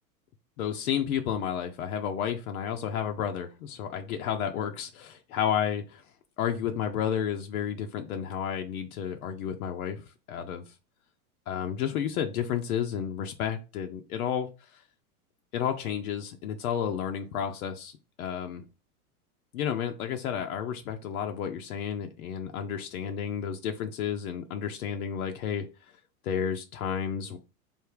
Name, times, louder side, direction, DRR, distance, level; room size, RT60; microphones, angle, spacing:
voice 1, 0.6-6.0 6.4-10.7 11.5-14.8 15.5-18.6 19.5-25.7 26.2-27.4, left 8 dB, 70° left, 4 dB, 0.7 m, -31 dB
3.5 x 2.7 x 4.7 m, 0.30 s
hypercardioid pair, 110°, 45 cm